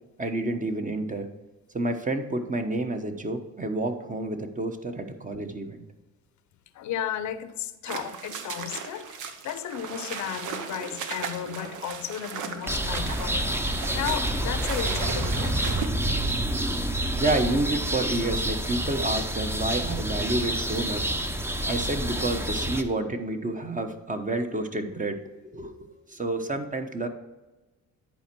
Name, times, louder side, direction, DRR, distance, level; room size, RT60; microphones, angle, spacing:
voice 1, 0.2-1.3 1.7-5.8 17.2-21.0 21.7-25.2 25.5-27.1, right 2 dB, 25° right, 6 dB, 1.0 m, -29 dB
voice 2, 6.7-15.8, left 10 dB, 70° left, 11 dB, 0.7 m, -34 dB
sound 1, 7.9-15.9, right 6 dB, 85° right, 0.9 m, -36 dB
sound 2, 12.7-22.8, right 1 dB, 10° right, 0.6 m, -28 dB
10.5 x 4.4 x 4.6 m, 1.1 s
cardioid pair, 90°, 30 cm